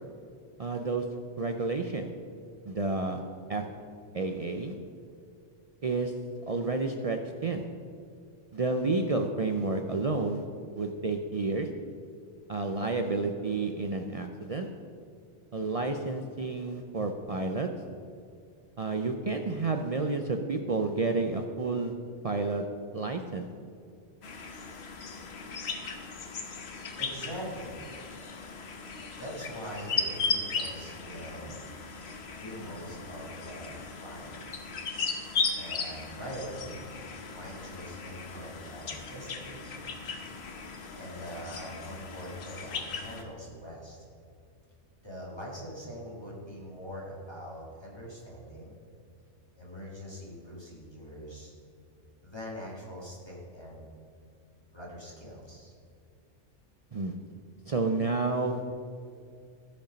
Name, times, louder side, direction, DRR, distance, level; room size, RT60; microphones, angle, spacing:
voice 1, 0.6-1.0 1.4-2.1 2.7-3.2 3.5-3.7 4.1-4.8 5.8-6.1 6.5-7.6 8.5-10.4 10.7-11.7 12.5-14.7 15.5-17.7 18.8-21.9 22.2-22.6 22.9-23.5 56.9-57.1 57.7-58.6, right 3 dB, 50° right, 4 dB, 0.4 m, -30 dB
sound 1, 24.2-43.2, left 4 dB, 65° left, 1.1 m, -37 dB
voice 2, 27.0-27.8 29.2-31.6 32.4-34.5 35.5-36.8 37.3-40.0 41.0-44.1 45.0-48.8 49.6-51.5 52.2-53.9 54.7-55.7, equal, 20° left, -5 dB, 1.9 m, -43 dB
14.5 x 5.3 x 5.1 m, 2.3 s
omnidirectional pair, 1.2 m